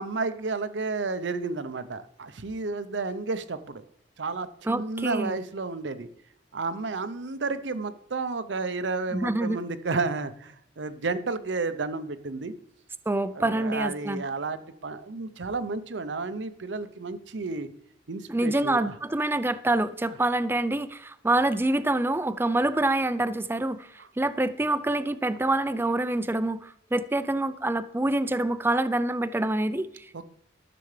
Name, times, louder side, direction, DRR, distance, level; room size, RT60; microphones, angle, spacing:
voice 1, 0.0-3.8 4.2-6.1 6.5-12.5 13.4-17.7 18.1-18.9 30.1-30.2, right 3 dB, 80° right, 12 dB, 0.7 m, -32 dB
voice 2, 4.6-5.4 9.1-9.6 13.1-14.2 18.3-30.1, right 2 dB, 15° right, 14 dB, 0.4 m, -26 dB
13.0 x 6.9 x 3.3 m, 0.77 s
head